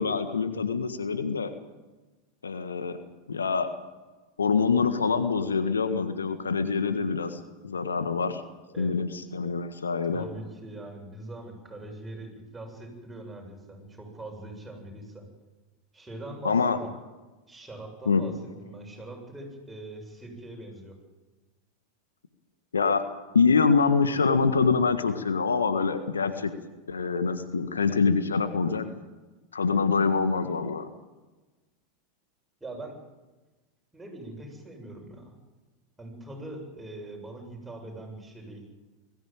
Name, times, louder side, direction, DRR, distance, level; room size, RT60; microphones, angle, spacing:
voice 1, 0.0-1.5 2.4-3.0 3.3-3.7 4.4-8.4 8.8-9.1 9.3-10.3 16.4-16.8 18.0-18.2 22.7-23.0 23.3-26.5 26.9-28.8 29.5-30.9, left 5 dB, 85° left, 9 dB, 1.6 m, -25 dB
voice 2, 10.1-15.3 15.9-16.9 17.5-21.0 32.6-33.0 33.9-35.4 36.0-38.6, right 2 dB, 10° right, 0 dB, 7.7 m, -42 dB
22.0 x 15.0 x 9.1 m, 1.2 s
hypercardioid pair, 90°, 0 cm